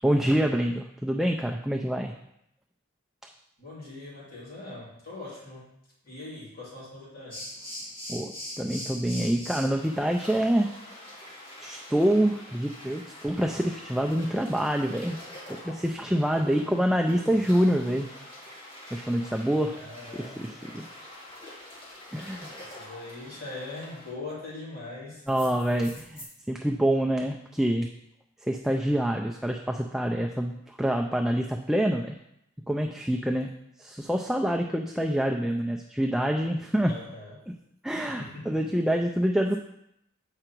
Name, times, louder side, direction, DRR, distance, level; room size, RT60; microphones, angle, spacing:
voice 1, 0.0-2.1 8.1-10.7 11.6-15.2 15.5-18.1 18.9-19.8 20.2-20.8 22.1-22.6 25.3-27.9 28.4-32.2 32.7-33.5 33.8-36.9 37.8-39.6, equal, ahead, 1 dB, 0.3 m, -26 dB
voice 2, 3.6-5.7 6.0-7.5 16.4-17.4 19.7-20.8 22.6-25.4 36.9-37.5 38.0-38.7, left 2 dB, 50° left, -8 dB, 3.2 m, -42 dB
sound 1, 7.3-24.1 25.3-26.2, left 1 dB, 25° left, 2.3 m, -44 dB
7.8 x 4.9 x 4.5 m, 0.79 s
head